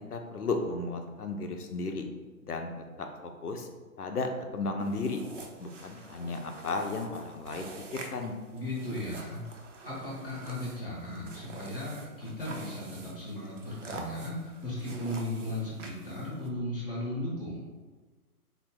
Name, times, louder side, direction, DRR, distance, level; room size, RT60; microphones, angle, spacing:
voice 1, 0.1-2.0 2.4-2.7 3.0-3.1 3.4-3.7 4.0-5.2 5.6-8.3, left 3 dB, 75° left, 5 dB, 0.7 m, -34 dB
sound 1, 4.8-16.5, right 3 dB, 55° right, 0.6 m, -47 dB
voice 2, 8.5-9.4 9.8-17.7, left 1 dB, 35° left, -4 dB, 0.8 m, -36 dB
4.0 x 2.1 x 3.3 m, 1.3 s
figure-of-eight pair, 130°, 46 cm